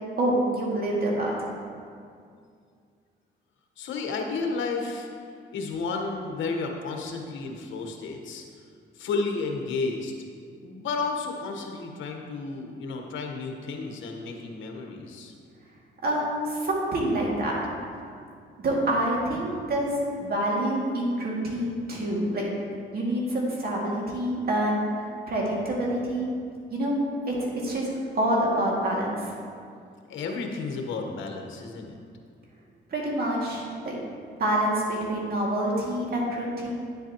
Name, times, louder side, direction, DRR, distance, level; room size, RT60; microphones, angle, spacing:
voice 1, 0.2-1.5 16.0-17.6 18.6-22.5 22.9-26.3 26.7-29.3 32.9-33.9 34.4-36.7, right 1 dB, 50° right, -3 dB, 2.2 m, -27 dB
voice 2, 3.8-5.1 5.5-8.4 8.9-10.1 10.6-15.3 30.1-32.0, left 4 dB, 75° left, 2 dB, 1.1 m, -32 dB
9.4 x 8.1 x 2.9 m, 2.3 s
cardioid pair, 90°, 20 cm